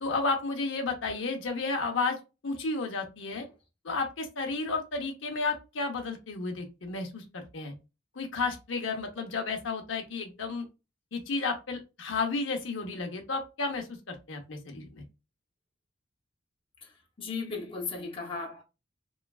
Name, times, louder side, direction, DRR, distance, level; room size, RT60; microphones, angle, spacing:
voice 1, 0.0-3.4 3.8-7.7 8.1-10.6 11.1-15.0, left 3 dB, 75° left, 0.7 m, -32 dB
voice 2, 16.8-18.6, left 4 dB, 30° left, 0.6 m, -37 dB
3.1 x 2.2 x 2.3 m
head